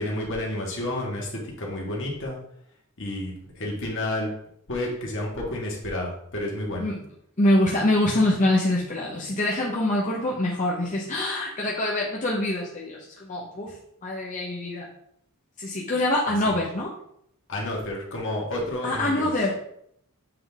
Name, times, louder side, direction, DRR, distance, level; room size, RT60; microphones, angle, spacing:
voice 1, 0.0-2.4 3.0-4.3 4.7-6.9 16.4-16.5 17.5-19.3, left 1 dB, 60° left, -2 dB, 1.7 m, -30 dB
voice 2, 7.4-13.8 14.0-14.9 15.6-16.9 18.8-19.5, left 1 dB, 35° left, -3 dB, 0.9 m, -25 dB
7.7 x 3.9 x 3.5 m, 0.71 s
head